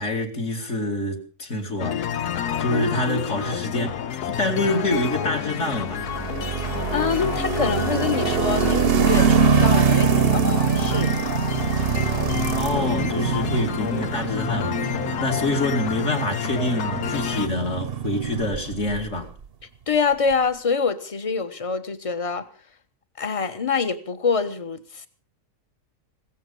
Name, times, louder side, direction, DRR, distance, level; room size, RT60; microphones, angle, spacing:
voice 1, 0.0-2.0 2.6-6.0 12.6-19.3, left 1 dB, 50° left, 2.7 m, -26 dB
sound 1, 1.8-17.5, left 9 dB, 90° left, 1.5 m, -29 dB
sound 2, 5.9-19.1, right 7 dB, 45° right, 0.9 m, -24 dB
voice 2, 6.9-11.1 19.9-22.5 23.2-25.1, left 5 dB, 25° left, 1.1 m, -25 dB
16.5 x 14.5 x 5.3 m
omnidirectional pair, 1.6 m